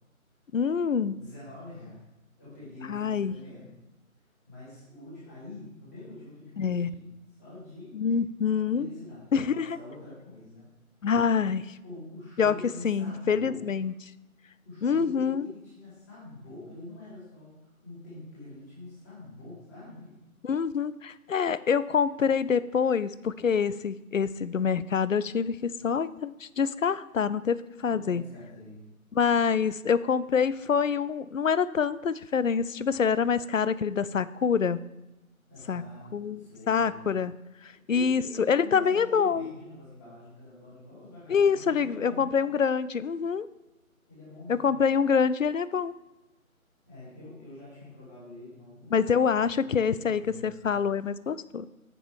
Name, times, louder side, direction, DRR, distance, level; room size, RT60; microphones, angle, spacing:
voice 1, 0.5-1.3 2.9-3.4 6.6-6.9 7.9-8.9 9.3-9.8 11.0-11.8 12.4-12.6 12.8-13.9 14.8-15.5 20.4-28.2 29.1-34.8 35.7-35.8 36.1-37.3 37.6-39.5 41.3-43.5 44.5-46.0 48.9-51.7, left 6 dB, 65° left, 16 dB, 0.5 m, -26 dB
voice 2, 1.1-2.1 2.4-3.8 4.5-7.0 7.4-7.9 8.7-10.7 11.8-13.6 14.6-20.2 27.8-28.8 35.5-37.0 37.7-42.3 44.1-44.9 46.9-50.6, left 2 dB, 10° left, -11 dB, 2.6 m, -45 dB
7.6 x 6.8 x 4.8 m, 0.98 s
figure-of-eight pair, 155°, 43 cm